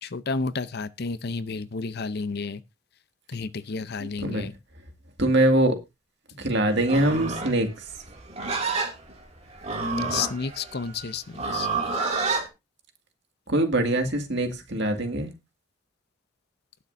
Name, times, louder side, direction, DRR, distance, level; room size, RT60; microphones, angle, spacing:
voice 1, 0.0-2.6 3.3-4.5 10.1-11.7, left 4 dB, 50° left, 0.6 m, -31 dB
voice 2, 4.0-4.5 5.2-5.8 6.4-7.7 13.5-15.3, right 1 dB, 55° right, 2.2 m, -23 dB
Livestock farm animals working animals, 6.8-12.5, right 3 dB, 30° right, 2.4 m, -29 dB
19.5 x 6.6 x 2.6 m
head